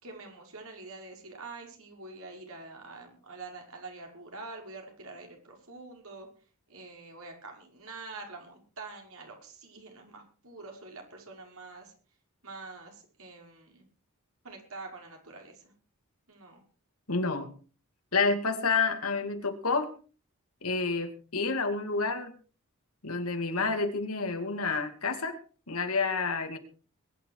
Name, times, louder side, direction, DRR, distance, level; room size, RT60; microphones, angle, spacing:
voice 1, 0.0-6.3 6.7-11.9 12.4-13.9 14.4-15.6 16.3-16.6, right 3 dB, 70° right, 2 dB, 5.8 m, -46 dB
voice 2, 17.1-17.5 18.1-19.9 20.6-22.3 23.0-25.3 25.7-26.6, left 4 dB, 75° left, 6 dB, 2.6 m, -29 dB
22.0 x 10.5 x 4.8 m, 0.39 s
head